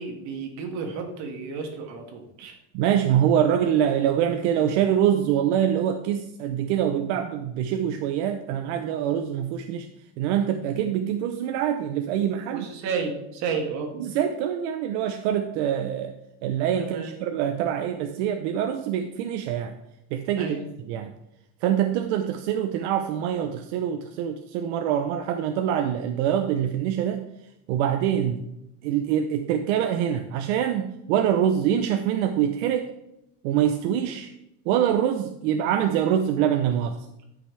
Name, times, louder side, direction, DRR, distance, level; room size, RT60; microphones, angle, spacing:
voice 1, 0.0-2.6 12.5-13.9 16.8-17.1 20.4-20.7, right 5 dB, 55° right, 3 dB, 2.0 m, -32 dB
voice 2, 2.7-9.9 10.2-12.7 14.0-16.1 16.4-19.8 20.1-20.6 20.9-21.1 21.6-27.2 27.7-28.4 28.8-32.9 33.4-34.3 34.7-37.0, right 9 dB, 80° right, 6 dB, 0.8 m, -24 dB
13.5 x 5.9 x 3.3 m, 0.85 s
cardioid pair, 155°, 34 cm